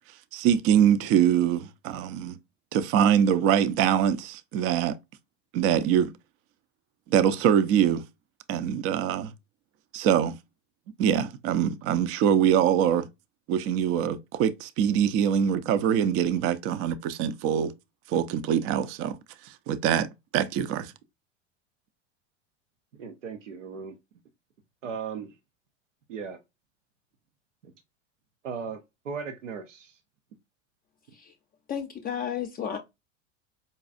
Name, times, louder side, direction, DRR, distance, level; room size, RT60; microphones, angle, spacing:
voice 1, 0.3-2.4 2.7-5.0 5.5-6.1 7.1-8.0 8.5-9.3 9.9-10.4 11.0-13.1 13.5-17.7 18.1-19.2 19.5-20.9, right 9 dB, 40° right, 0.5 m, -24 dB
voice 2, 23.0-24.0 24.8-25.4 26.1-26.4 27.6-27.7 28.4-30.0, right 6 dB, 85° right, 0.6 m, -37 dB
voice 3, 31.7-32.8, left 8 dB, 25° left, 0.5 m, -32 dB
5.2 x 2.3 x 2.4 m
hypercardioid pair, 90°, 36 cm